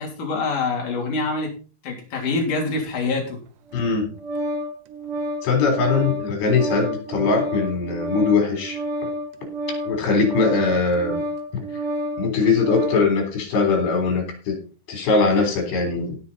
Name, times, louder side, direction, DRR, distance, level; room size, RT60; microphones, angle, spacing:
voice 1, 0.0-1.5 1.8-3.4, left 3 dB, 50° left, 0 dB, 4.5 m, -25 dB
voice 2, 3.7-4.1 5.4-8.8 9.9-11.2 12.2-14.6 14.9-16.2, left 4 dB, 75° left, 3 dB, 5.7 m, -21 dB
Organ, 3.7-13.1, right 1 dB, 90° right, 1.8 m, -29 dB
17.0 x 6.2 x 4.2 m, 0.36 s
omnidirectional pair, 5.0 m